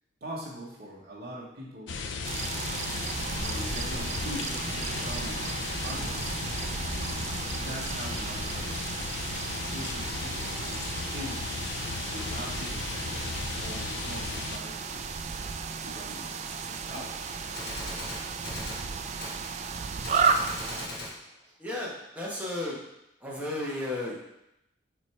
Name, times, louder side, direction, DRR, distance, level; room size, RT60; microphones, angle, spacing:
voice 1, 0.2-2.0 3.4-6.4 7.4-8.8 9.7-11.5 12.1-13.3 13.6-15.2 15.8-16.4 16.8-17.2 20.3-20.4 21.4-21.5, equal, 55° right, -5 dB, 1.1 m, -42 dB
sound 1, 1.9-14.6, left 4 dB, 75° left, 0.5 m, -35 dB
sound 2, 2.2-20.9, right 5 dB, 35° right, 0.3 m, -34 dB
Gunshot gunfire, 17.0-17.1 17.6-18.9 19.2-19.4 20.0-21.2, left 2 dB, 55° left, 1.1 m, -39 dB
voice 2, 21.6-22.8 23.2-24.1, left 1 dB, 10° right, -5 dB, 1.2 m, -33 dB
6.9 x 3.1 x 4.4 m, 0.85 s
head